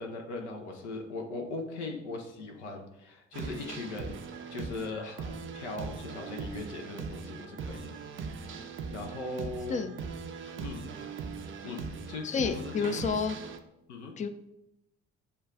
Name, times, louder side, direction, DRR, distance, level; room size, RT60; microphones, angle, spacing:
voice 1, 0.0-7.9 8.9-9.8 10.5-10.8 11.6-13.2 13.9-14.1, left 3 dB, 75° left, 2 dB, 0.7 m, -39 dB
sound 1, 3.3-13.6, right 5 dB, 35° right, 0.5 m, -40 dB
voice 2, 12.2-13.4 14.2-14.3, left 5 dB, 20° left, 9 dB, 0.4 m, -30 dB
6.3 x 2.3 x 3.5 m, 0.87 s
figure-of-eight pair, 40°, 35 cm